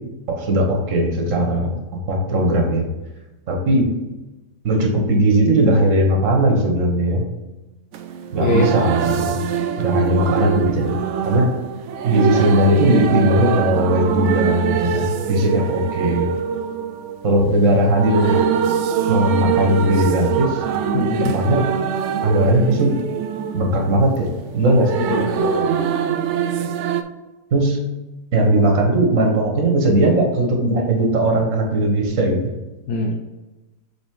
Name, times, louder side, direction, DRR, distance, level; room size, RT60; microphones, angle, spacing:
voice 1, 0.3-1.7 2.1-2.9 3.5-3.9 4.6-7.2 8.3-9.4 9.8-10.9 11.2-11.5 12.0-16.3 17.2-18.4 19.1-20.6 21.3-21.6 22.2-22.9 23.5-24.3 24.5-25.0 27.5-27.8 28.3-32.4, right 1 dB, 50° right, 1 dB, 1.7 m, -18 dB
sound 1, 7.9-27.0, right 8 dB, 75° right, 0.6 m, -23 dB
voice 2, 20.9-21.3 25.1-25.7 32.9-33.1, left 2 dB, 70° left, -1 dB, 1.2 m, -22 dB
7.3 x 4.0 x 3.8 m, 1.1 s
omnidirectional pair, 1.7 m